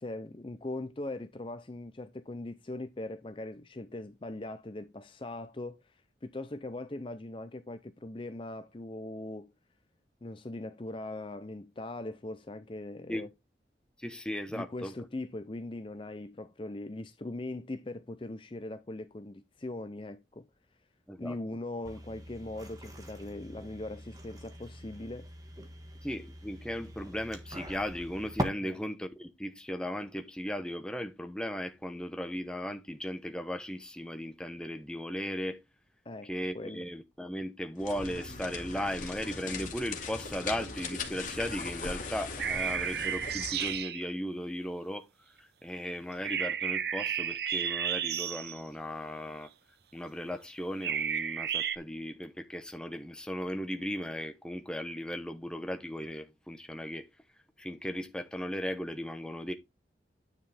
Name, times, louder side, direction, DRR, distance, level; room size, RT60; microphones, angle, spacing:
voice 1, 0.0-9.5 10.2-13.3 14.5-20.5 21.2-25.3 28.6-28.8 36.0-36.9, left 2 dB, 30° left, 0.5 m, -40 dB
voice 2, 14.0-14.9 21.1-21.4 26.0-35.6 36.2-45.1 45.4-49.5 49.9-57.1 57.6-59.5, equal, 5° left, 0.9 m, -37 dB
sound 1, 21.8-28.4, equal, 20° right, 1.5 m, -42 dB
sound 2, 37.8-43.8, left 4 dB, 45° left, 2.0 m, -40 dB
sound 3, 42.4-44.1 46.2-48.6 50.8-51.8, right 8 dB, 60° right, 0.7 m, -32 dB
9.7 x 5.6 x 3.4 m
head